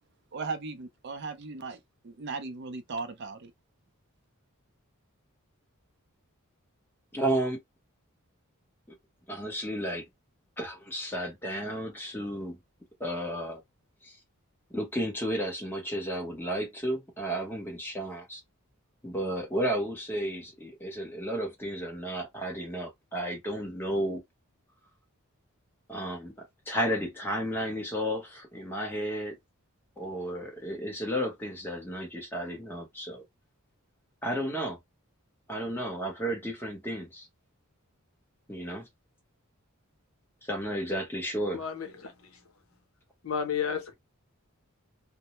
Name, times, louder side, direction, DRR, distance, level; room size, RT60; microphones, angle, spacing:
voice 1, 0.3-3.5, right 4 dB, 50° right, 0.4 m, -37 dB
voice 2, 7.1-7.6 9.3-10.0 10.6-12.6 13.0-13.6 14.0-14.1 14.7-18.4 19.0-24.2 25.9-29.4 30.0-33.2 34.2-34.8 35.5-37.3 38.5-38.9 40.4-41.6, equal, 10° left, 0.8 m, -33 dB
voice 3, 41.5-42.1 43.2-43.9, left 7 dB, 75° left, 0.7 m, -32 dB
2.1 x 2.0 x 2.9 m
head